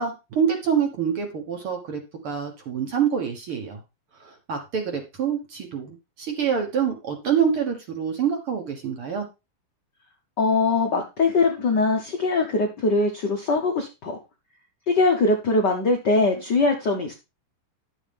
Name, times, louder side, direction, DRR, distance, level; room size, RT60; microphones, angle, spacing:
voice 1, 0.0-3.8 4.2-9.3, right 7 dB, 55° right, 4 dB, 1.8 m, -26 dB
voice 2, 10.4-14.2 14.9-17.1, left 3 dB, 85° left, 3 dB, 0.9 m, -22 dB
11.0 x 7.2 x 3.5 m, 0.26 s
omnidirectional pair, 3.8 m